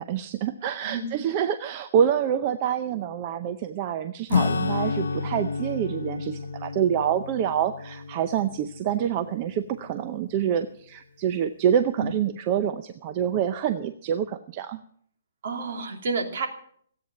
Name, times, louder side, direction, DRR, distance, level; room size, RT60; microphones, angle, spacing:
voice 1, 0.0-14.8, right 9 dB, 25° right, 10 dB, 0.6 m, -26 dB
Acoustic guitar / Strum, 4.3-10.2, left 4 dB, 80° left, 0.8 m, -30 dB
voice 2, 15.4-16.5, right 4 dB, 50° right, 4 dB, 2.8 m, -29 dB
16.0 x 9.0 x 7.5 m, 0.62 s
hypercardioid pair, 170°, 0 cm